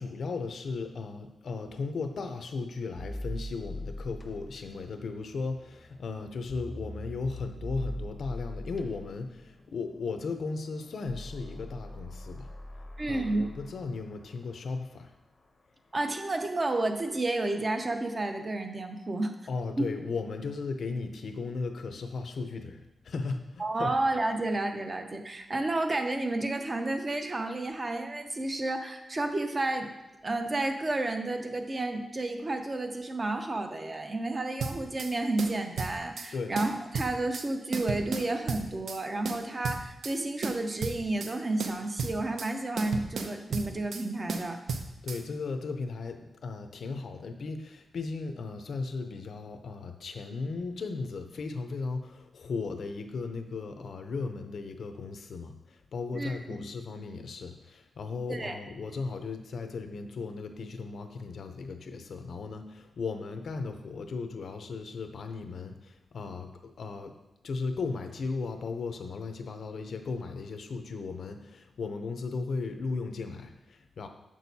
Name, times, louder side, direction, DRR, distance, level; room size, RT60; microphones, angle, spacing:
voice 1, 0.0-12.5 13.1-15.1 19.5-23.9 36.3-36.6 45.0-67.1 67.4-74.1, left 4 dB, 60° left, 7 dB, 0.5 m, -36 dB
sound 1, 3.0-14.2, left 1 dB, 25° left, 0.6 m, -42 dB
voice 2, 13.0-13.4 15.9-19.3 19.8-19.9 23.6-29.9 30.2-44.6 56.1-56.6 58.3-58.6, right 2 dB, 30° right, 5 dB, 0.5 m, -31 dB
sound 2, 34.6-35.1 35.4-36.3 36.6-37.5 37.7-39.0 39.3-40.2 40.4-41.3 41.6-42.5 42.8-44.0 44.3-45.2, right 4 dB, 70° right, 0.5 m, -34 dB
7.1 x 6.2 x 2.7 m, 0.99 s
wide cardioid pair, 145°, 0 cm